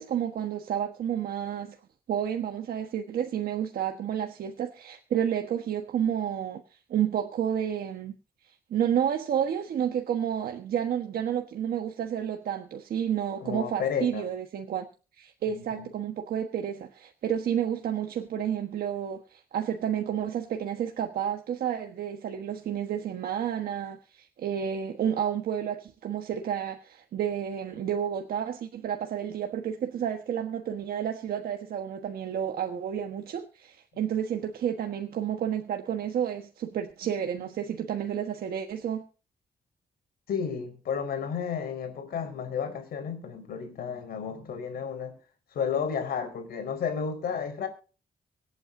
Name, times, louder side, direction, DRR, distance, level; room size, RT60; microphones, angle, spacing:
voice 1, 0.0-1.8 2.1-6.6 6.9-8.1 8.7-14.8 15.2-39.0, right 9 dB, 75° right, 1.4 m, -30 dB
voice 2, 13.4-14.3 15.5-15.9 40.3-45.2 45.5-47.7, left 7 dB, 85° left, 4.5 m, -32 dB
25.0 x 9.0 x 2.7 m
cardioid pair, 125°, 15 cm